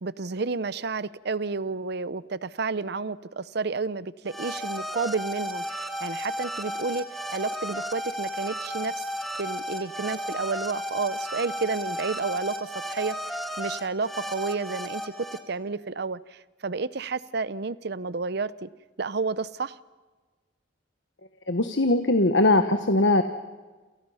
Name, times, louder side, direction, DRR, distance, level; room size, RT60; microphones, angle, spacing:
voice 1, 0.0-7.1 7.3-9.0 9.4-18.7 19.0-19.8, right 4 dB, 60° right, 17 dB, 0.7 m, -31 dB
sound 1, 4.3-15.4, equal, ahead, 2.2 m, -34 dB
voice 2, 21.5-23.2, left 2 dB, 70° left, 7 dB, 1.2 m, -21 dB
28.5 x 28.5 x 5.7 m, 1.3 s
head